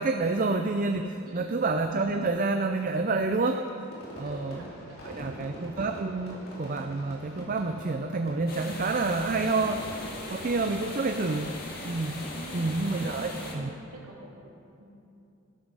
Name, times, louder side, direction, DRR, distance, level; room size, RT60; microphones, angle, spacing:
voice 1, 0.0-3.6 4.2-4.6 5.0-12.2 12.5-13.7, right 3 dB, 40° right, 6 dB, 0.5 m, -28 dB
voice 2, 1.2-1.6 3.4-3.6 4.2-5.5 12.3-12.8 13.0-14.4 14.8-14.9, right 1 dB, 85° right, -3 dB, 2.7 m, -45 dB
Fireworks, 3.9-13.4, right 1 dB, 75° left, 4.0 m, -45 dB
sound 1, 8.5-13.5, left 2 dB, 45° left, 2.0 m, -40 dB
15.0 x 12.5 x 4.8 m, 2.7 s
head